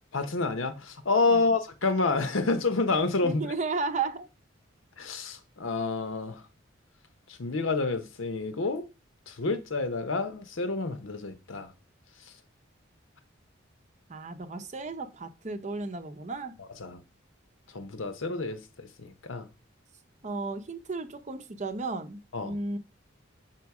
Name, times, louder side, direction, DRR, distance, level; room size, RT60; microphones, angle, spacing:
voice 1, 0.1-3.5 5.0-6.4 7.3-8.8 9.3-11.7 12.3-12.4 16.6-17.0 17.7-19.5 22.3-22.6, left 3 dB, 80° left, 0.9 m, -29 dB
voice 2, 3.2-4.3 14.1-16.5 20.2-22.8, right 3 dB, 35° right, 0.6 m, -34 dB
6.2 x 4.5 x 4.8 m
head